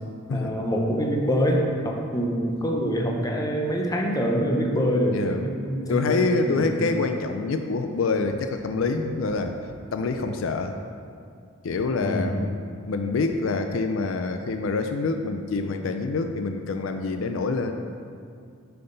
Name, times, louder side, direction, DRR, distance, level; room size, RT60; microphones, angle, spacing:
voice 1, 0.3-6.1 6.4-6.7 12.0-12.4, equal, 20° left, 0 dB, 0.8 m, -25 dB
voice 2, 5.9-9.5 9.9-10.7 11.6-12.6 12.9-17.7, left 3 dB, 70° left, 6 dB, 0.4 m, -26 dB
7.7 x 5.7 x 3.9 m, 2.3 s
head